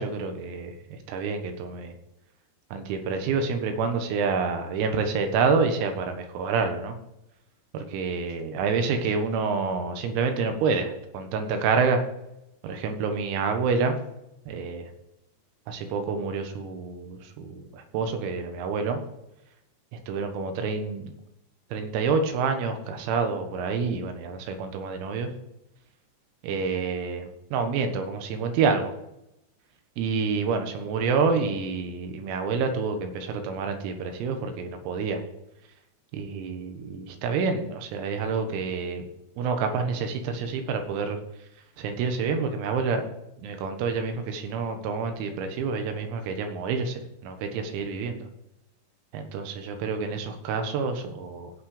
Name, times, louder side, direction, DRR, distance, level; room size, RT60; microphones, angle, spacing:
voice 1, 0.0-2.0 2.7-7.0 7.7-12.0 12.6-14.0 14.5-14.9 15.7-19.0 19.9-21.1 21.7-25.3 26.4-28.9 30.0-35.2 36.1-39.1 39.4-41.2 41.8-43.1 43.4-48.3 49.1-51.5, right 5 dB, 90° right, 6 dB, 4.2 m, -28 dB
16.5 x 6.3 x 5.0 m, 0.84 s
omnidirectional pair, 6.0 m